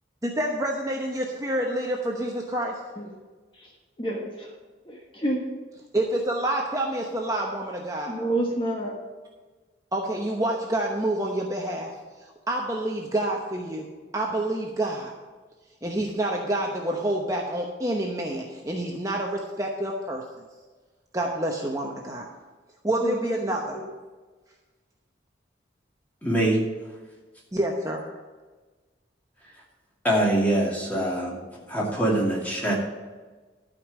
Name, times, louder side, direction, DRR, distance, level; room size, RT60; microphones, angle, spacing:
voice 1, 0.2-2.8 5.9-8.2 9.9-11.9 12.5-13.9 14.1-15.1 15.8-20.2 21.1-22.3 22.8-23.8 27.5-28.1, right 1 dB, 20° right, 0 dB, 0.9 m, -28 dB
voice 2, 4.0-4.5 4.9-5.4 8.1-8.9 23.0-23.4 23.7-23.8, right 1 dB, 25° left, -1 dB, 1.2 m, -28 dB
voice 3, 26.2-26.6 30.0-31.4 31.7-32.7, right 1 dB, 10° left, -4 dB, 2.4 m, -23 dB
12.0 x 5.3 x 7.4 m, 1.3 s
head